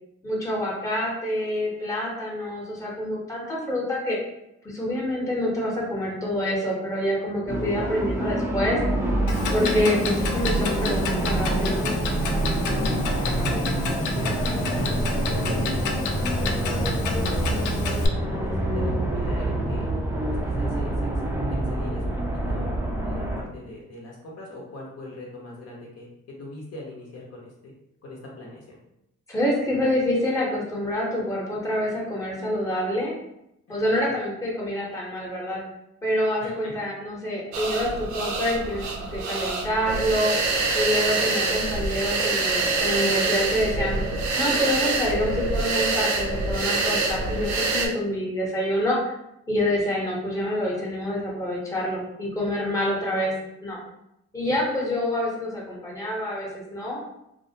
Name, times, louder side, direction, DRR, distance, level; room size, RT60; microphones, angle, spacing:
voice 1, 0.2-4.2 4.6-8.8 9.5-11.9 29.3-33.1 33.7-35.6 36.0-40.3 40.7-44.0 44.3-49.1 49.5-53.3 53.6-53.8 54.3-57.0, equal, 10° left, -3 dB, 0.8 m, -27 dB
sound 1, 7.5-23.4, right 1 dB, 10° right, 0.4 m, -26 dB
Clock, 9.3-18.1, left 4 dB, 85° left, 0.4 m, -31 dB
voice 2, 13.2-19.9 20.4-22.2 22.5-22.7 23.0-26.1 26.4-27.7 28.0-28.8 33.7-34.2 36.4-36.8 54.5-54.6, left 1 dB, 55° left, -2 dB, 0.7 m, -42 dB
sound 2, 37.5-47.9, right 3 dB, 70° right, 0.5 m, -25 dB
2.4 x 2.1 x 2.7 m, 0.82 s
cardioid pair, 90°, 30 cm